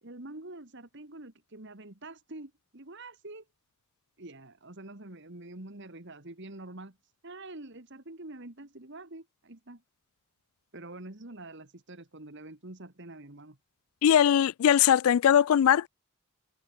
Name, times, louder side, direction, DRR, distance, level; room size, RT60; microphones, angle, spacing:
voice 1, 0.0-3.4 4.2-7.0 7.2-9.8 10.7-13.6, right 2 dB, 50° right, 2.1 m, -46 dB
voice 2, 14.0-15.9, left 9 dB, 70° left, 0.3 m, -21 dB
head